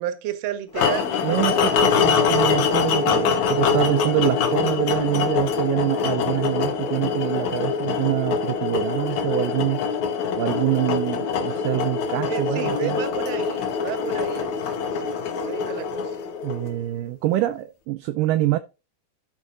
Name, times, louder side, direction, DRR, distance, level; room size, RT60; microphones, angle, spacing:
voice 1, 0.0-1.8 12.3-16.1, right 11 dB, 65° right, 1.7 m, -32 dB
sound 1, 0.8-16.9, left 6 dB, 60° left, 2.2 m, -24 dB
voice 2, 1.2-9.8 10.3-13.0 16.4-18.6, right 15 dB, 80° right, 1.9 m, -25 dB
12.0 x 5.2 x 3.8 m
omnidirectional pair, 4.4 m